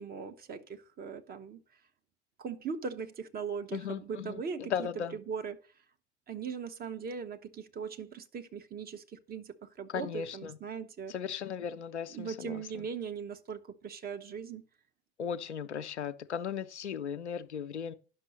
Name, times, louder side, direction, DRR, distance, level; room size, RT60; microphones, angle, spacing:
voice 1, 0.0-1.6 2.4-5.6 6.3-11.1 12.1-14.6, right 6 dB, 25° right, 1.0 m, -40 dB
voice 2, 3.7-5.2 9.9-10.6 11.1-12.9 15.2-17.9, left 8 dB, 80° left, 0.7 m, -37 dB
10.0 x 6.1 x 5.1 m
figure-of-eight pair, 70°, 34 cm